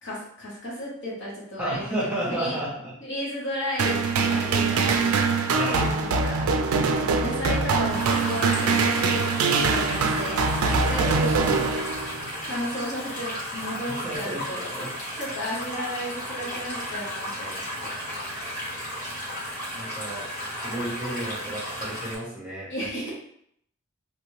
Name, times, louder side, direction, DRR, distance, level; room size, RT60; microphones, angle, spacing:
voice 1, 0.0-2.6 3.0-5.1 5.8-6.5 7.2-9.3 9.5-10.4 10.9-11.5 12.4-14.7 15.2-17.9 22.7-23.1, equal, 55° left, -6 dB, 1.2 m, -34 dB
voice 2, 1.6-2.9 5.6-5.8 13.9-14.9 19.7-20.3 20.6-22.7, right 1 dB, 5° right, -8 dB, 0.9 m, -32 dB
sound 1, 3.8-12.3, right 4 dB, 80° right, 0.4 m, -23 dB
sound 2, 7.9-22.1, equal, 40° left, 1.4 m, -34 dB
3.1 x 2.5 x 3.1 m, 0.70 s
head